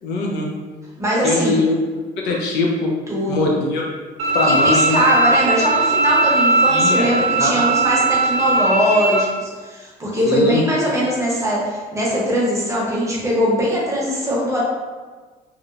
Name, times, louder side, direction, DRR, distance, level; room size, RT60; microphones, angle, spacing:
voice 1, 0.0-0.5 1.2-1.8 2.2-2.9 3.3-3.8 4.3-5.0 6.7-7.1 7.4-7.6 10.2-10.6, left 2 dB, 85° left, -1 dB, 0.6 m, -21 dB
voice 2, 1.0-1.6 3.1-3.6 4.5-14.6, equal, 15° right, -5 dB, 0.8 m, -21 dB
Bowed string instrument, 4.2-9.2, right 2 dB, 85° right, 0.4 m, -18 dB
2.9 x 2.0 x 2.4 m, 1.4 s
cardioid pair, 110°, 17 cm